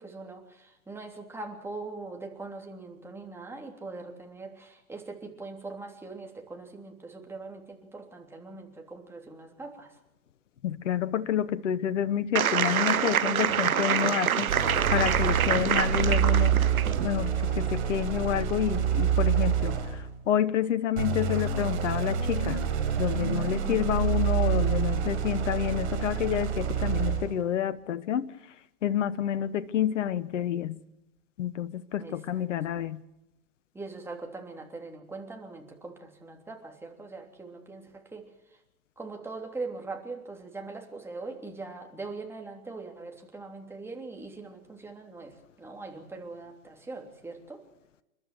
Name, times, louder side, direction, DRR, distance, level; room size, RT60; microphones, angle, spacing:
voice 1, 0.0-10.0 32.0-32.4 33.7-38.3 39.0-47.6, right 3 dB, 5° right, 2 dB, 3.2 m, -41 dB
voice 2, 10.6-14.5 14.9-16.6 17.0-22.6 23.0-28.3 28.8-30.8 31.4-33.0, left 10 dB, 60° left, 14 dB, 1.1 m, -29 dB
sound 1, 12.4-17.1, right 9 dB, 80° right, 0.9 m, -26 dB
sound 2, 14.5-20.1 20.9-27.4, right 7 dB, 50° right, 4.8 m, -27 dB
29.5 x 12.5 x 7.8 m, 0.92 s
figure-of-eight pair, 115°, 42 cm